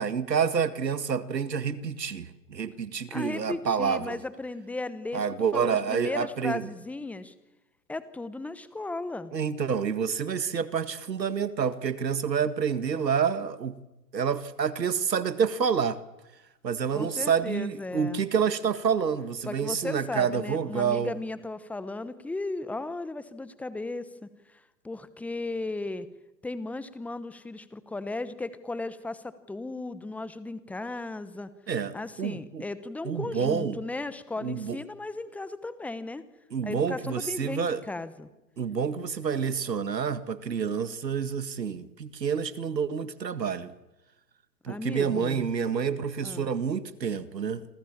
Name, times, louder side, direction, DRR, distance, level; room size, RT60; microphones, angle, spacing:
voice 1, 0.0-4.2 5.1-6.7 9.3-13.8 14.1-16.0 16.6-21.1 31.7-32.7 33.0-33.8 34.4-34.8 36.5-37.8 38.6-43.7 44.6-47.7, right 6 dB, 80° right, 1.9 m, -28 dB
voice 2, 3.1-5.3 5.5-7.3 7.9-9.3 16.9-18.2 19.5-26.1 26.4-31.5 31.9-36.2 36.6-38.3 44.7-45.4 46.2-46.5, left 2 dB, 5° left, 1.0 m, -36 dB
27.0 x 27.0 x 7.4 m
hypercardioid pair, 125°, 49 cm